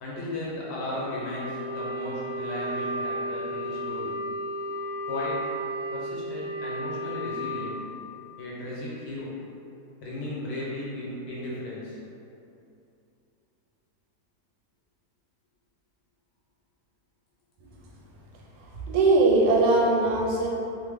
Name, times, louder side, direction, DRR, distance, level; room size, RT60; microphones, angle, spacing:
voice 1, 0.0-4.2 5.1-5.5 5.9-7.8 8.4-9.4 10.0-12.0, left 1 dB, 85° left, -6 dB, 1.4 m, -35 dB
Wind instrument woodwind instrument, 0.9-7.6, equal, 65° right, 0.9 m, -33 dB
voice 2, 18.6-20.5, right 2 dB, 85° right, -3 dB, 1.2 m, -21 dB
2.9 x 2.0 x 3.4 m, 2.7 s
omnidirectional pair, 1.8 m